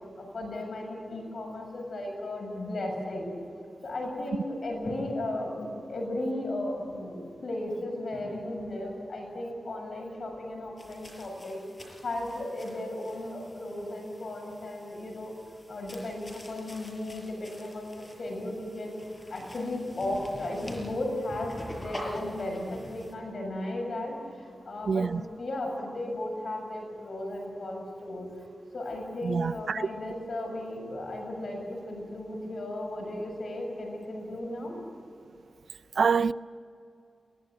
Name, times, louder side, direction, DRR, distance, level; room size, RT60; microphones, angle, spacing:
voice 1, 0.2-3.3 3.8-11.6 12.0-15.3 15.7-19.0 19.3-28.5 28.7-34.8, left 1 dB, 65° left, 7.3 m, -35 dB
sound 1, 10.8-23.1, equal, 25° left, 6.5 m, -46 dB
voice 2, 24.9-25.2 29.2-29.9 36.0-36.3, right 5 dB, 80° right, 0.5 m, -25 dB
22.5 x 18.5 x 8.0 m
cardioid pair, 70°, 0 cm